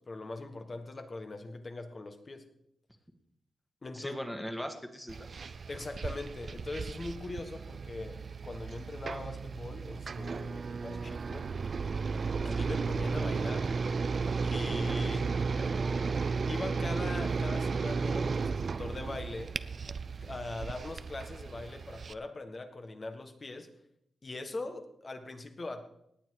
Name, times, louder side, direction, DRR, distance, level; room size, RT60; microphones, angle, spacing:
voice 1, 0.0-2.4 3.8-4.2 5.7-11.5 12.4-13.7 14.4-15.8 16.5-19.5 20.2-23.7 24.2-25.8, left 2 dB, 35° left, 6 dB, 1.6 m, -41 dB
voice 2, 3.9-5.3 15.3-16.4, equal, 5° left, 5 dB, 1.8 m, -41 dB
sound 1, 5.1-22.1, right 4 dB, 50° right, 0.5 m, -34 dB
18.0 x 9.4 x 4.8 m, 0.76 s
wide cardioid pair, 110°, 0 cm